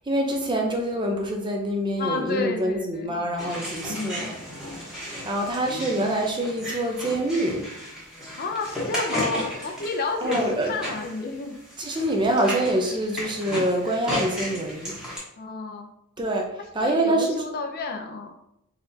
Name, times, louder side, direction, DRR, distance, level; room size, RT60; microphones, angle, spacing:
voice 1, 0.1-4.3 4.7-5.0 5.2-7.6 10.2-10.7 11.8-14.9 16.2-17.4, right 1 dB, 20° right, 2 dB, 0.6 m, -25 dB
voice 2, 2.0-3.1 3.9-4.4 8.4-11.6 15.4-15.9 16.7-18.3, left 3 dB, 45° left, 5 dB, 0.5 m, -31 dB
sound 1, 3.4-15.2, equal, 5° right, 1.1 m, -34 dB
4.3 x 4.0 x 2.7 m, 0.78 s
head